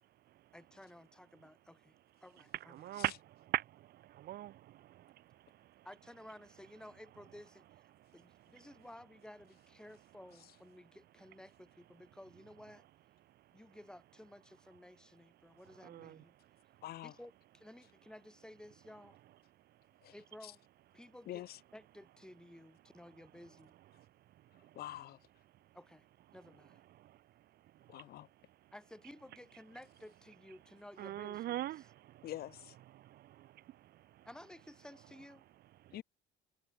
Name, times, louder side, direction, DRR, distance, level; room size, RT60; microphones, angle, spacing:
voice 1, 0.5-2.0 2.2-2.8 5.8-7.7 8.1-12.8 13.5-16.3 17.0-19.2 20.1-20.6 20.9-21.4 21.7-23.7 25.7-26.1 26.3-26.8 28.7-31.6 34.3-35.4, left 1 dB, 5° left, 0.4 m, -55 dB
voice 2, 2.5-5.9 7.9-8.7 13.3-13.5 15.5-16.8 19.7-20.1 23.9-24.8 25.6-25.8 26.9-28.2 28.6-28.7 31.0-32.3 32.9-34.3 35.8-36.0, right 14 dB, 50° right, 0.6 m, -44 dB
voice 3, 16.8-17.1 20.0-20.1 20.4-20.5 21.3-21.6 24.7-25.2 27.9-28.3 32.2-32.8 35.9-36.0, left 14 dB, 50° left, 0.6 m, -45 dB
cardioid pair, 130°, 20 cm